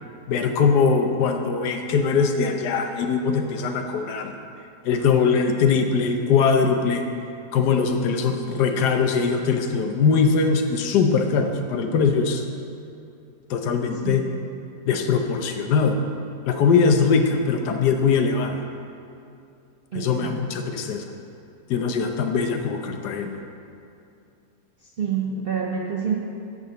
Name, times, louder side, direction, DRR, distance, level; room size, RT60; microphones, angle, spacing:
voice 1, 0.3-4.3 4.8-7.0 7.5-12.4 13.5-14.2 14.8-16.0 16.5-18.6 19.9-21.1 21.7-23.3, left 5 dB, 85° left, 5 dB, 1.3 m, -21 dB
voice 2, 19.9-20.5 25.0-26.2, right 6 dB, 70° right, -1 dB, 0.5 m, -27 dB
9.5 x 4.0 x 6.5 m, 2.6 s
omnidirectional pair, 1.7 m